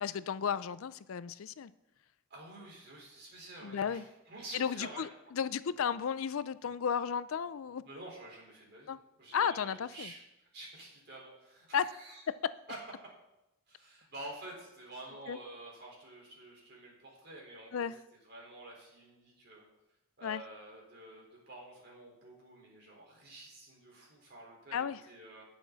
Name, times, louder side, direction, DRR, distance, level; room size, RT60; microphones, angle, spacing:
voice 1, 0.0-1.7 3.6-4.0 4.5-7.8 8.9-9.0 9.3-10.1 11.7-11.9 15.3-15.4 17.7-18.0 20.2-20.4 24.7-25.0, left 7 dB, 75° left, 16 dB, 0.4 m, -34 dB
voice 2, 2.3-5.0 7.8-8.9 9.2-10.2 10.5-12.2 12.7-12.8 13.7-19.6 20.2-25.4, right 2 dB, 50° right, -3 dB, 4.3 m, -49 dB
18.0 x 7.1 x 4.0 m, 0.91 s
head